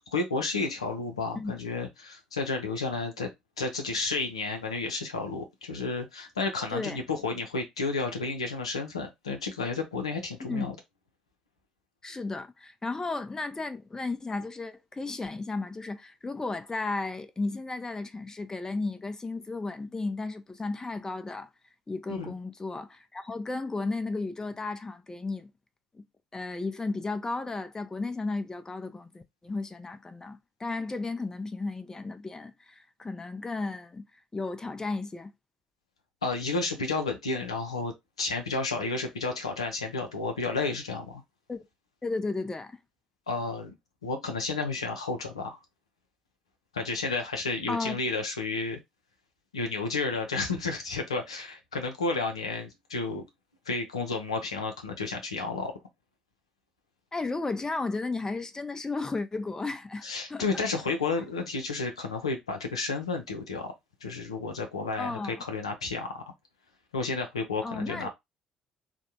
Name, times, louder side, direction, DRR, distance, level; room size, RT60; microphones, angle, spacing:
voice 1, 0.1-3.3 3.6-10.7 22.1-22.4 36.2-41.2 43.3-43.7 44.0-45.6 46.7-48.8 49.5-53.2 53.7-55.7 60.0-63.7 64.0-66.3 66.9-68.1, left 3 dB, 85° left, 0.5 m, -31 dB
voice 2, 10.4-10.7 12.0-21.5 21.9-25.5 25.9-26.0 26.3-34.1 34.3-35.3 41.5-41.6 42.0-42.8 47.7-48.0 57.1-60.0 60.3-60.6 65.0-65.4 67.6-68.1, left 3 dB, 20° left, 0.5 m, -34 dB
3.3 x 2.1 x 2.7 m
figure-of-eight pair, 50°, 3 cm